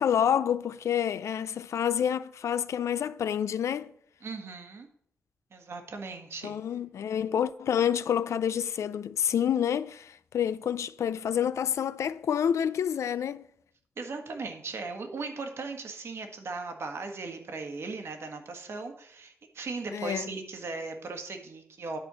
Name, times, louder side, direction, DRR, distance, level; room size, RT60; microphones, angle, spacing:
voice 1, 0.0-3.9 6.4-13.5 19.9-20.3, left 9 dB, 85° left, 0.4 m, -28 dB
voice 2, 4.2-4.9 5.5-6.6 14.0-22.0, right 3 dB, 60° right, 1.6 m, -38 dB
10.5 x 4.4 x 7.5 m
wide cardioid pair, 110°, 5 cm